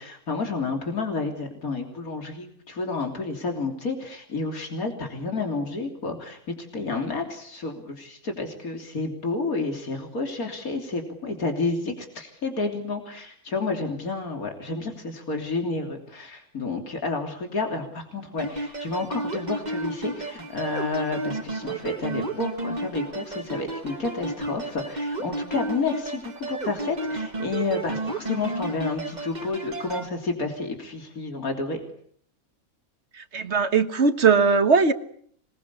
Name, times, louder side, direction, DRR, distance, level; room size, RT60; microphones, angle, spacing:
voice 1, 0.0-31.8, left 3 dB, 85° left, 4 dB, 3.7 m, -30 dB
sound 1, 18.4-30.1, right 2 dB, 30° right, 2.0 m, -32 dB
voice 2, 33.3-34.9, right 5 dB, 50° right, 10 dB, 1.7 m, -19 dB
26.0 x 21.0 x 8.4 m, 0.62 s
omnidirectional pair, 1.5 m